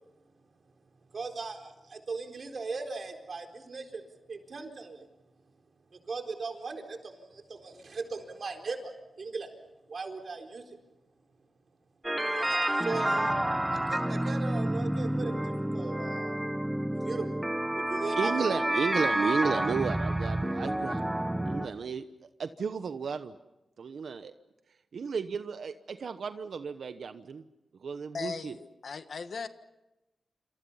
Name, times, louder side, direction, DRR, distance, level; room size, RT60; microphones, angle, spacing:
voice 1, 1.1-5.1 5.9-9.5 9.9-10.8 12.2-13.3 13.7-16.4 16.9-17.3 17.8-18.7, right 4 dB, 55° right, 4 dB, 4.2 m, -39 dB
sound 1, 12.0-21.7, right 1 dB, 10° right, 1.1 m, -29 dB
voice 2, 18.2-21.0 21.5-22.0 22.4-23.3 23.8-24.3 24.9-27.4 27.8-28.5, right 5 dB, 75° right, 10 dB, 1.0 m, -33 dB
voice 3, 28.1-29.5, left 5 dB, 65° left, 10 dB, 1.5 m, -38 dB
28.0 x 27.5 x 5.7 m, 0.97 s
wide cardioid pair, 90°, 0 cm